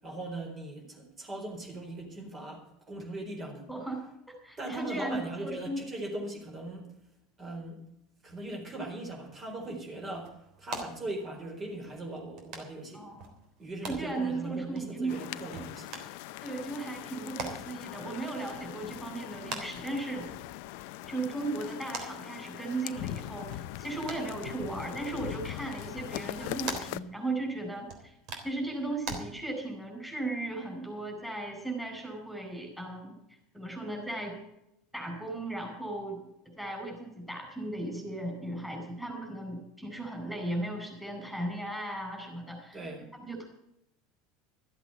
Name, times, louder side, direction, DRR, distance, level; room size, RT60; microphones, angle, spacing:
voice 1, 0.0-3.7 4.6-6.9 7.4-7.8 8.2-13.1 13.6-16.0 42.7-43.1, right 2 dB, 30° right, 1 dB, 4.4 m, -39 dB
voice 2, 3.7-5.8 12.9-13.3 13.8-15.3 16.4-20.3 21.1-28.1 28.4-33.2 33.5-34.4 34.9-36.2 36.6-42.8 43.1-43.5, right 2 dB, ahead, 3 dB, 4.5 m, -36 dB
sound 1, 9.3-29.2, right 4 dB, 60° right, 3.4 m, -46 dB
sound 2, 15.1-27.0, left 16 dB, 70° left, 0.5 m, -41 dB
13.5 x 8.2 x 8.0 m, 0.81 s
hypercardioid pair, 95°, 0 cm